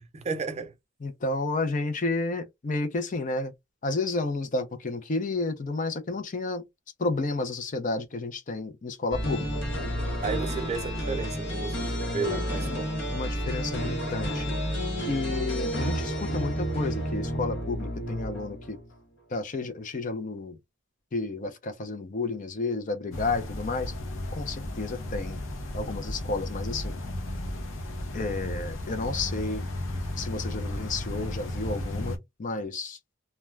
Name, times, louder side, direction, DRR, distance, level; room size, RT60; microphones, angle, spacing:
voice 1, 0.1-0.7 10.2-13.0, right 5 dB, 35° right, 0.5 m, -33 dB
voice 2, 1.0-3.5 3.8-6.7 7.0-9.5 12.7-12.8 13.1-14.6 15.1-18.8 19.3-20.6 21.1-23.9 24.3-25.4 25.7-27.0 28.1-29.7 30.2-33.0, left 3 dB, 40° left, 0.5 m, -31 dB
sound 1, 9.1-18.9, equal, 60° left, 0.9 m, -31 dB
sound 2, 23.1-32.2, left 1 dB, 90° left, 0.7 m, -34 dB
2.3 x 2.2 x 3.1 m
head